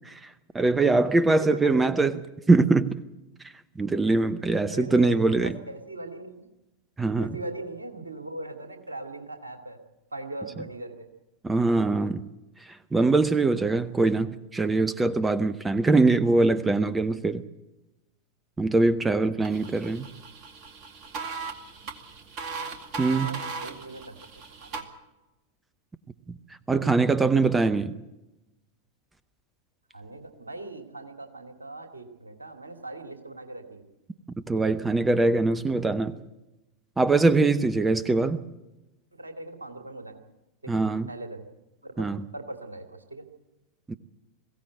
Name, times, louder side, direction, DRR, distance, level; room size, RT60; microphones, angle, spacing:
voice 1, 0.5-2.2 2.5-3.0 3.8-5.5 7.0-7.4 11.4-12.2 12.7-17.4 18.6-20.1 23.0-23.3 26.7-27.9 34.5-36.2 37.0-38.4 40.7-41.1 42.0-42.2 43.9-44.0, right 3 dB, 10° right, 15 dB, 0.8 m, -22 dB
voice 2, 1.3-1.9 4.7-6.5 7.2-9.8 10.1-11.1 23.1-24.2 24.6-24.8 29.9-33.8 39.1-40.2 40.6-40.7 41.1-41.4 41.8-42.1 42.3-43.2, right 2 dB, 80° right, 5 dB, 2.3 m, -39 dB
sound 1, 19.4-24.8, right 4 dB, 40° right, 2.2 m, -38 dB
22.0 x 16.0 x 8.0 m, 1.0 s
figure-of-eight pair, 90°, 0 cm